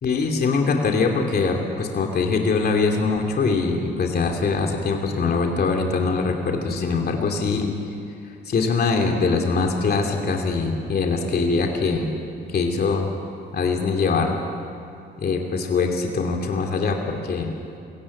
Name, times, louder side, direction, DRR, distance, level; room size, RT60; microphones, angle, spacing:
voice 1, 0.0-7.7 8.5-12.1 12.5-13.1 13.5-14.4 15.2-17.5, left 4 dB, 50° left, 2 dB, 2.7 m, -22 dB
22.0 x 16.5 x 8.6 m, 2.5 s
cardioid pair, 90°, 20 cm